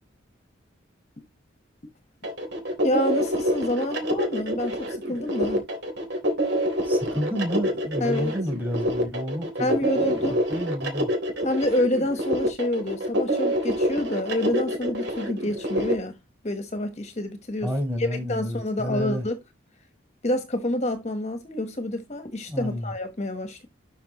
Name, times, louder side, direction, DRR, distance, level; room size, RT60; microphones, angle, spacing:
sound 1, 2.2-15.9, equal, 60° right, 3.3 m, -26 dB
voice 1, 2.8-5.6 8.0-8.3 9.6-10.4 11.4-16.2 16.4-17.7 18.0-19.4 20.2-23.7, left 1 dB, 35° left, 1.2 m, -28 dB
voice 2, 6.8-11.1 17.6-19.2 22.5-22.9, equal, 10° right, 4.6 m, -30 dB
12.0 x 5.5 x 3.0 m
head